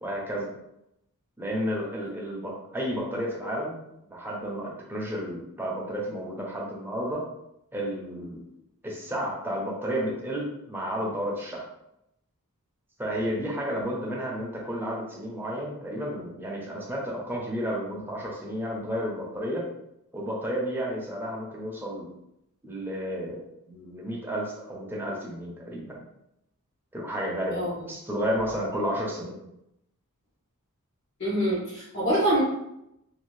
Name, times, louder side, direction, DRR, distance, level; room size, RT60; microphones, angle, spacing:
voice 1, 0.0-0.5 1.4-3.7 4.1-7.3 7.7-8.4 8.8-11.7 13.0-19.7 20.1-22.1 22.6-26.0 26.9-29.4, equal, 10° right, -3 dB, 0.7 m, -32 dB
voice 2, 27.5-27.9 31.2-32.4, right 1 dB, 55° left, -11 dB, 1.1 m, -25 dB
2.7 x 2.6 x 3.1 m, 0.82 s
head